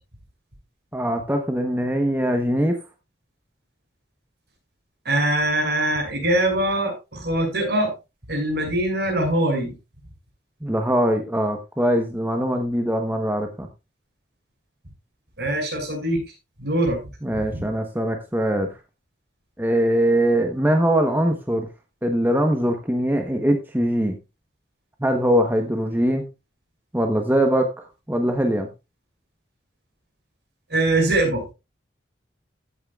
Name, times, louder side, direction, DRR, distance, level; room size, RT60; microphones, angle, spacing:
voice 1, 0.9-2.8 10.6-13.7 17.2-18.8 19.6-21.7 22.0-24.2 25.0-26.2 26.9-28.7, equal, 10° right, 4 dB, 1.1 m, -22 dB
voice 2, 5.0-7.9 8.3-9.7 15.4-16.2 16.6-17.0 30.7-31.4, right 1 dB, 60° right, 2 dB, 6.3 m, -22 dB
15.0 x 8.8 x 2.4 m, 0.26 s
head